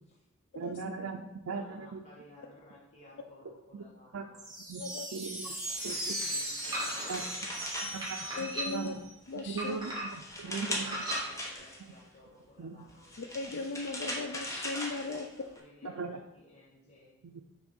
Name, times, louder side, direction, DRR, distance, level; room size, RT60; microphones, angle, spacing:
voice 1, 0.5-2.0 3.7-3.9 4.1-4.3 4.7-4.8 5.1-5.5 5.8-6.2 7.1-7.2 7.9-9.1 9.5-11.0 12.6-12.9 15.8-16.2 17.2-17.4, right 4 dB, 70° right, 3 dB, 0.5 m, -39 dB
voice 2, 1.4-4.5 6.2-8.1 10.3-13.2 15.6-17.2, left 1 dB, 30° left, -4 dB, 1.3 m, -57 dB
sound 1, 4.3-9.1, right 1 dB, 5° right, 1.6 m, -38 dB
sound 2, 5.5-8.8 9.3-12.0 12.9-15.6, left 1 dB, 15° left, 1.0 m, -40 dB
sound 3, 6.7-7.3 8.0-8.9 9.6-10.3 10.8-11.2, right 1 dB, 20° right, 2.0 m, -37 dB
voice 3, 8.4-8.9 9.3-9.8 13.2-15.3, left 3 dB, 55° left, 5 dB, 0.4 m, -37 dB
6.3 x 3.2 x 5.2 m, 0.94 s
head